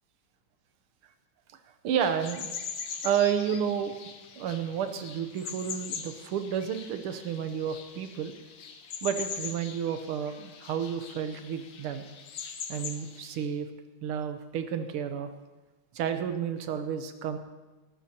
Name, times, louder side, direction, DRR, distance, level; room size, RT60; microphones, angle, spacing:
voice 1, 1.8-2.5 3.0-4.0 4.4-8.3 9.0-12.0 12.7-13.7 14.0-15.3 15.9-17.4, right 8 dB, 90° right, 8 dB, 1.8 m, -31 dB
sound 1, 2.0-13.5, left 6 dB, 70° left, 1.7 m, -42 dB
18.5 x 14.0 x 2.9 m, 1.2 s
omnidirectional pair, 2.3 m